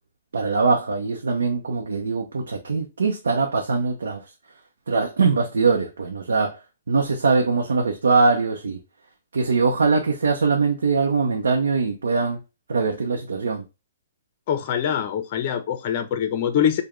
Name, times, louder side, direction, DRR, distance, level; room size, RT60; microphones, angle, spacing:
voice 1, 0.3-4.2 4.9-6.6 6.9-8.8 9.3-12.4 12.7-13.6, right 4 dB, 90° right, 0.7 m, -22 dB
voice 2, 14.5-16.8, left 9 dB, 45° left, 0.6 m, -24 dB
5.0 x 2.2 x 3.1 m
hypercardioid pair, 140°, 0 cm